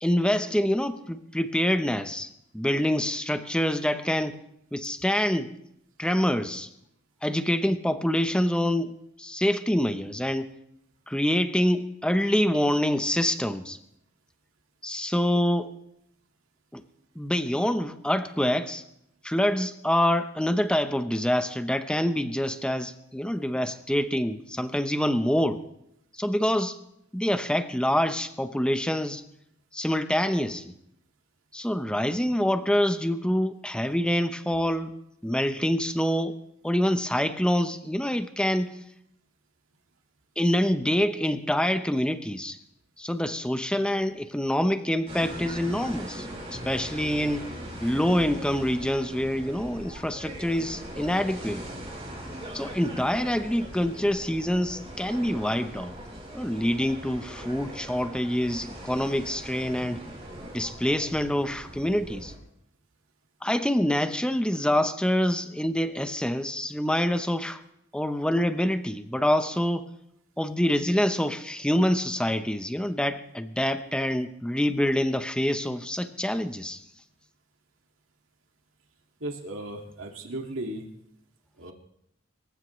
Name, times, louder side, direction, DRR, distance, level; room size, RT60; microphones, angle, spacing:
voice 1, 0.0-2.3 2.5-4.4 4.7-5.5 6.0-6.7 7.2-8.9 9.2-10.5 11.1-13.8 14.8-15.7 16.7-16.8 17.1-18.8 19.2-25.6 26.1-26.8 27.1-29.2 29.7-30.6 31.5-34.9 35.2-36.3 36.6-38.7 40.4-42.6 43.0-47.5 47.8-51.6 52.5-55.9 56.3-60.0 60.5-62.3 63.4-67.6 67.9-69.9 70.4-76.8, equal, 5° left, 9 dB, 0.8 m, -26 dB
sound 1, 45.1-62.4, right 1 dB, 30° right, 4.6 m, -40 dB
voice 2, 79.2-80.9 81.6-81.7, right 1 dB, 85° right, 2 dB, 2.1 m, -36 dB
24.5 x 15.0 x 3.2 m, 0.78 s
head